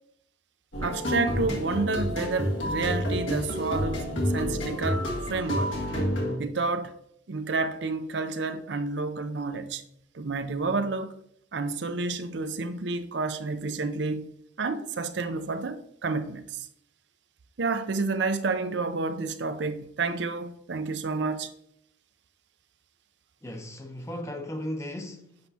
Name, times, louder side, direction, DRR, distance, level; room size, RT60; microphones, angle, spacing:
sound 1, 0.7-6.4, equal, 85° left, 1.8 m, -29 dB
voice 1, 0.8-5.7 6.4-7.0 7.3-9.8 10.1-11.1 11.5-14.3 14.6-16.7 17.6-21.5, right 3 dB, 65° right, 0.5 m, -30 dB
voice 2, 23.4-25.4, left 1 dB, 15° left, 0.6 m, -36 dB
7.8 x 5.6 x 2.8 m
head